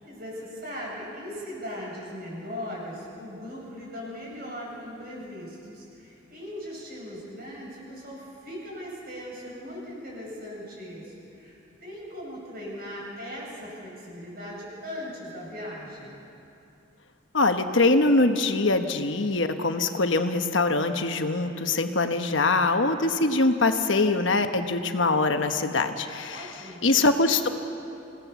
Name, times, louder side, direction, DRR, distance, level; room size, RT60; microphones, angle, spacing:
voice 1, 0.0-16.2 26.3-27.0, equal, 50° right, -4 dB, 7.3 m, -39 dB
voice 2, 17.3-26.5 26.8-27.5, left 3 dB, 65° left, 7 dB, 1.2 m, -23 dB
27.0 x 17.5 x 7.1 m, 2.7 s
head